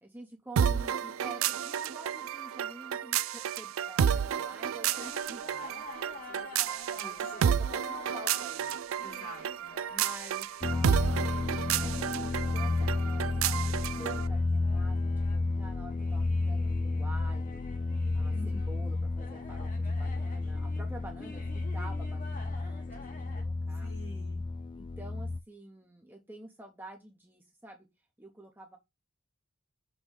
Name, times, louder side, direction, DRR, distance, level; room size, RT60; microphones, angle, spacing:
voice 1, 0.0-8.8 9.9-17.6 18.1-23.9 24.7-27.9 28.2-28.8, right 1 dB, 10° right, 2 dB, 0.8 m, -49 dB
sound 1, 0.6-14.3, right 8 dB, 75° right, 0.4 m, -31 dB
sound 2, 4.9-23.4, left 3 dB, 40° left, 1.1 m, -50 dB
voice 2, 7.0-7.5 9.0-9.7 18.3-18.8 23.8-24.4, left 2 dB, 80° left, -1 dB, 4.0 m, -48 dB
sound 3, 10.6-25.4, left 3 dB, 25° left, 0.4 m, -32 dB
6.3 x 3.0 x 5.1 m, 0.21 s
head